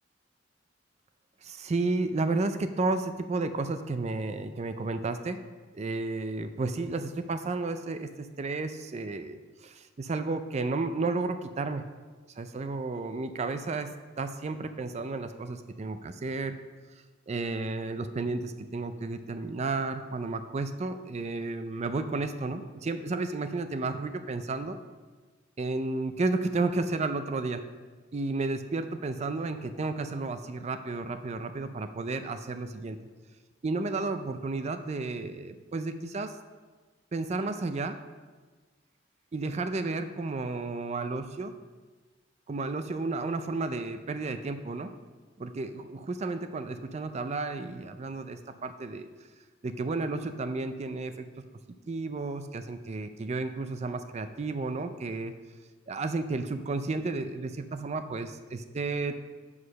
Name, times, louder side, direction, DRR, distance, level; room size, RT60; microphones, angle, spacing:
voice 1, 1.4-5.4 5.7-11.9 12.4-16.6 17.3-24.8 25.6-27.7 28.1-33.0 33.6-36.3 37.1-38.0 39.3-41.5 42.5-44.9 45.4-49.1 49.6-51.3 51.9-55.3 55.9-59.2, right 3 dB, 35° right, 9 dB, 0.4 m, -32 dB
8.3 x 4.8 x 6.2 m, 1.4 s
head